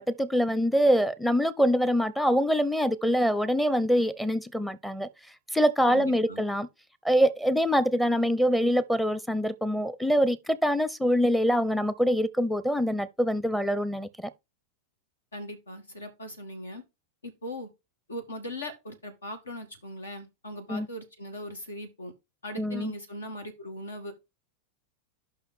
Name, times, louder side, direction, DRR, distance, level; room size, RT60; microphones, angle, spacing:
voice 1, 0.0-5.1 5.5-6.7 7.0-14.3 20.7-20.9 22.6-22.9, equal, 5° left, 0.8 m, -24 dB
voice 2, 5.9-6.4 15.3-16.8 17.2-17.7 18.1-22.1 22.4-24.1, left 1 dB, 75° left, 2.1 m, -39 dB
5.8 x 5.6 x 5.5 m
figure-of-eight pair, 90°, 0 cm